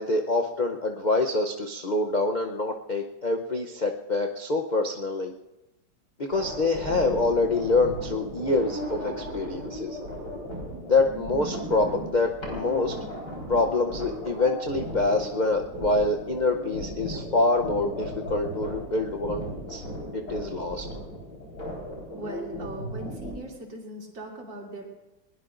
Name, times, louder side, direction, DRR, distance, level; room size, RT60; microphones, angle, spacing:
voice 1, 0.0-5.3 6.2-10.0 10.9-12.9 13.5-19.8 20.1-20.8, left 2 dB, 85° left, 3 dB, 0.4 m, -26 dB
sound 1, 6.3-23.3, equal, 70° left, 5.0 m, -36 dB
voice 2, 22.2-25.0, right 2 dB, 90° right, -2 dB, 3.5 m, -39 dB
21.0 x 20.5 x 2.5 m, 1.0 s
omnidirectional pair, 2.0 m